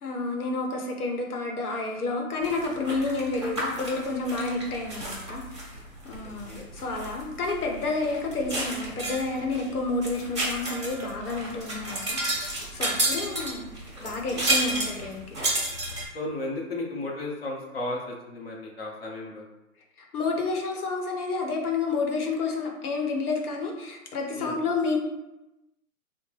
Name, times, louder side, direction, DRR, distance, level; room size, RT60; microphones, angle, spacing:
voice 1, 0.0-5.7 6.0-13.7 14.0-15.2 20.1-25.0, left 3 dB, 85° left, 1 dB, 1.0 m, -30 dB
sound 1, 2.4-16.0, right 1 dB, 20° right, 0.6 m, -32 dB
voice 2, 6.2-6.7 13.9-14.5 16.1-19.4 24.3-24.6, left 2 dB, 45° left, -2 dB, 0.8 m, -35 dB
3.5 x 2.1 x 3.2 m, 0.96 s
hypercardioid pair, 180°, 43 cm